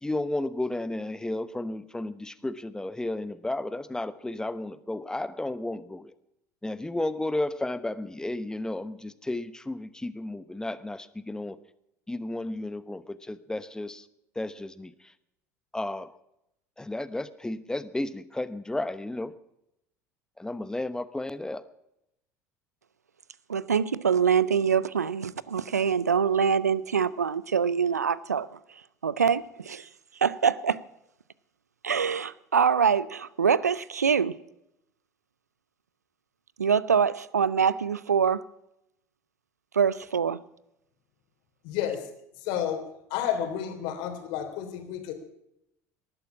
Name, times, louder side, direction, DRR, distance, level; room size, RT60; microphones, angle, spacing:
voice 1, 0.0-6.1 6.6-11.6 12.1-14.1 14.3-15.1 15.7-16.2 16.8-19.3 20.4-21.6, left 2 dB, 10° left, 1.0 m, -33 dB
voice 2, 23.5-30.8 31.8-34.4 36.6-38.5 39.7-40.4, right 6 dB, 85° right, 0.5 m, -25 dB
voice 3, 41.6-42.0 42.4-42.8 43.1-45.1, left 9 dB, 60° left, 3.2 m, -30 dB
19.0 x 11.5 x 6.1 m
figure-of-eight pair, 70°, 8 cm